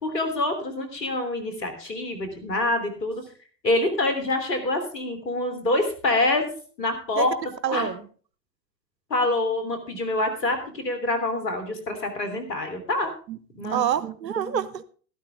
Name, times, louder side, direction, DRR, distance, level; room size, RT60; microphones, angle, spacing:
voice 1, 0.0-3.2 3.6-6.5 6.8-7.3 7.7-7.9 9.1-13.1 13.6-13.8, left 2 dB, 75° left, 7 dB, 3.3 m, -26 dB
voice 2, 7.6-8.0 13.3-14.8, right 8 dB, 85° right, 16 dB, 0.9 m, -27 dB
13.0 x 12.5 x 3.4 m, 0.40 s
figure-of-eight pair, 90°, 49 cm